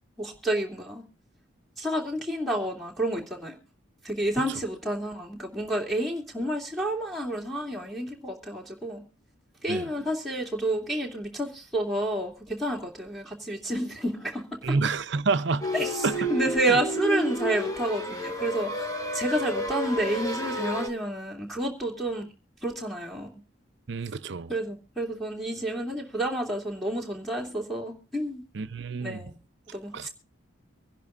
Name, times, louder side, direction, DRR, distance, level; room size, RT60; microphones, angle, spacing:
voice 1, 0.2-1.0 1.8-3.6 4.0-9.0 9.6-14.8 15.7-18.9 19.1-22.3 22.6-23.4 24.5-28.4 29.0-29.4 29.7-30.1, right 1 dB, ahead, 2.7 m, -30 dB
voice 2, 14.6-15.7 16.0-16.2 16.7-16.8 23.9-24.5 28.5-29.2 29.9-30.1, right 4 dB, 60° right, 0.6 m, -28 dB
sound 1, 15.6-20.9, equal, 15° left, 1.6 m, -31 dB
24.5 x 11.0 x 2.5 m
head